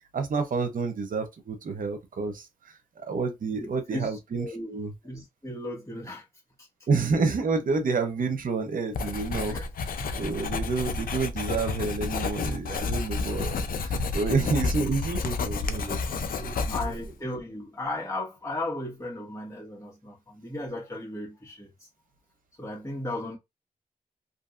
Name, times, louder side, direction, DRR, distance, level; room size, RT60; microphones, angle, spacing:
voice 1, 0.1-2.5 3.0-4.9 6.9-9.6 9.8-16.7, right 4 dB, 75° right, 0.7 m, -29 dB
voice 2, 3.6-4.8 5.0-6.2 9.5-9.7 16.7-21.7 22.6-23.4, left 1 dB, 20° left, 1.4 m, -35 dB
Writing, 8.9-17.1, left 4 dB, 85° left, 0.5 m, -30 dB
2.6 x 2.6 x 2.4 m
cardioid pair, 55°, 14 cm